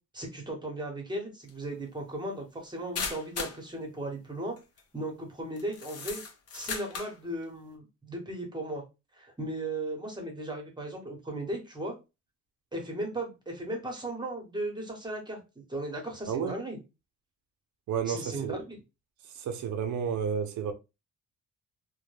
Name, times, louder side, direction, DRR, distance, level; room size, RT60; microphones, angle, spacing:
voice 1, 0.1-4.5 4.9-6.2 6.5-8.8 9.1-11.9 12.7-15.4 15.7-16.8 18.1-18.7, right 1 dB, 15° right, 1.0 m, -36 dB
sound 1, 1.5-1.6 2.9-3.6 4.6-4.8 5.6-7.2, left 5 dB, 50° left, 0.7 m, -36 dB
voice 2, 16.3-16.6 17.9-18.6 19.2-20.7, right 7 dB, 70° right, 0.5 m, -31 dB
2.2 x 2.1 x 3.2 m
cardioid pair, 90°, 30 cm